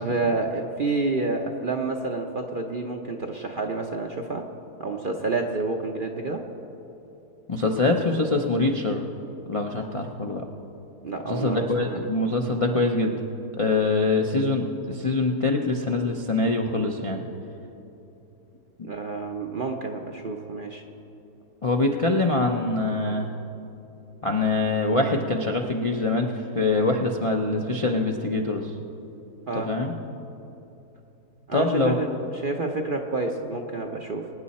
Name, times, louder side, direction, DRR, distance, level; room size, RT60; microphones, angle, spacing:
voice 1, 0.0-4.5 4.8-6.5 11.0-12.1 18.8-20.8 29.5-29.8 31.5-34.3, right 3 dB, 50° right, 2 dB, 0.6 m, -29 dB
voice 2, 7.5-9.0 9.5-10.4 11.3-13.1 13.6-17.3 21.6-23.3 24.2-26.3 26.5-28.7 29.6-29.9 31.5-31.9, left 2 dB, 40° left, 1 dB, 0.4 m, -24 dB
22.5 x 9.6 x 4.2 m, 3.0 s
omnidirectional pair, 1.7 m